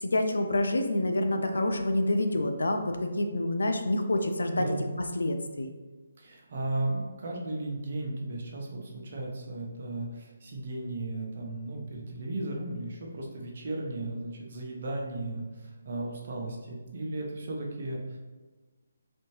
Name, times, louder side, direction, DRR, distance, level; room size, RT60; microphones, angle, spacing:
voice 1, 0.0-4.7 5.2-5.7, left 1 dB, 80° left, 5 dB, 0.5 m, -27 dB
voice 2, 4.5-4.9 6.2-18.2, right 2 dB, 50° right, -1 dB, 0.8 m, -35 dB
4.2 x 2.7 x 3.1 m, 1.3 s
figure-of-eight pair, 155°, 0 cm